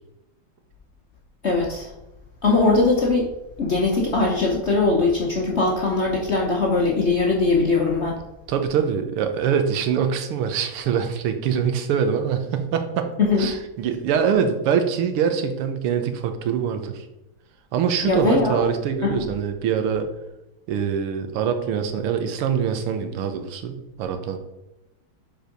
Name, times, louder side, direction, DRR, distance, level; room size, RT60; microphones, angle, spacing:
voice 1, 1.4-1.9 2.4-3.3 3.6-8.2 13.2-13.5 18.0-18.6 19.0-19.3, left 3 dB, 55° left, -1 dB, 0.8 m, -20 dB
voice 2, 8.5-13.1 13.4-17.1 17.7-20.1 20.7-24.4, right 7 dB, 85° right, 7 dB, 1.8 m, -24 dB
7.2 x 4.6 x 5.1 m, 0.93 s
omnidirectional pair, 2.4 m